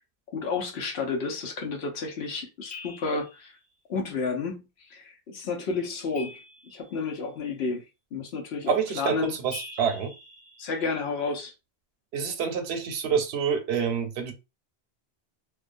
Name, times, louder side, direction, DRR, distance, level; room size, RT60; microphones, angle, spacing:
voice 1, 0.3-3.5 3.9-4.6 4.9-6.3 6.7-7.8 8.1-9.3 10.6-11.5, left 4 dB, 85° left, 0.9 m, -31 dB
sound 1, 2.7-3.5 6.1-7.2 9.5-11.2, left 3 dB, 10° left, 1.0 m, -44 dB
voice 2, 8.7-10.1 12.1-14.3, right 7 dB, 85° right, 0.8 m, -27 dB
2.3 x 2.2 x 2.5 m
omnidirectional pair, 1.0 m